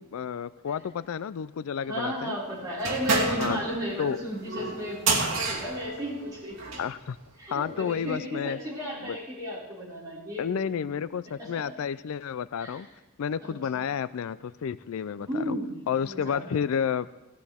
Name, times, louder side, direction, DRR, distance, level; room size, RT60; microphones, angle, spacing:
voice 1, 0.0-2.4 3.4-3.6 4.0-4.2 6.8-7.2 7.5-8.6 9.0-9.2 10.4-12.9 13.2-15.6 15.9-17.1, left 7 dB, 70° left, 16 dB, 0.4 m, -31 dB
voice 2, 1.9-6.8 7.4-10.8 11.4-11.6 12.6-12.9 13.4-13.9 15.2-16.4, equal, 15° right, -8 dB, 5.2 m, -34 dB
sound 1, 2.8-6.9, right 3 dB, 60° right, 2.5 m, -29 dB
17.5 x 13.5 x 3.5 m, 1.0 s
head